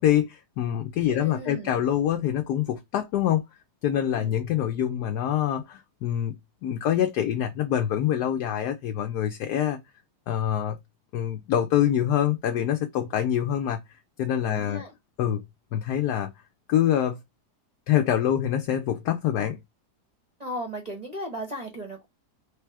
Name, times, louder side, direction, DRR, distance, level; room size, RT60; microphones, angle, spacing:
voice 1, 0.0-3.4 3.8-6.3 6.6-9.8 10.3-10.8 11.1-13.8 14.2-14.8 15.2-15.4 15.7-16.3 16.7-17.2 17.9-19.6, left 10 dB, 75° left, 1.2 m, -25 dB
voice 2, 1.1-1.7 4.1-4.4 14.5-14.9 20.4-22.1, equal, 30° right, 0.9 m, -36 dB
3.4 x 3.3 x 4.6 m
omnidirectional pair, 1.8 m